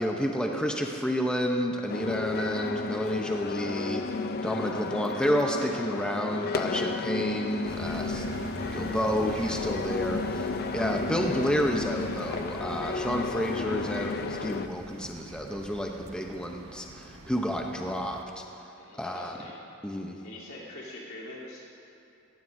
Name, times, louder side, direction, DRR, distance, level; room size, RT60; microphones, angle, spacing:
voice 1, 0.0-18.4 19.0-19.4 19.8-20.2, equal, 5° left, 1 dB, 0.7 m, -30 dB
sound 1, 1.9-14.7, left 3 dB, 50° left, 0.5 m, -33 dB
sound 2, 7.7-18.2, right 2 dB, 70° right, 0.9 m, -43 dB
voice 2, 18.8-19.6 20.2-21.6, left 1 dB, 80° left, -6 dB, 3.2 m, -44 dB
18.5 x 16.0 x 2.7 m, 2.7 s
head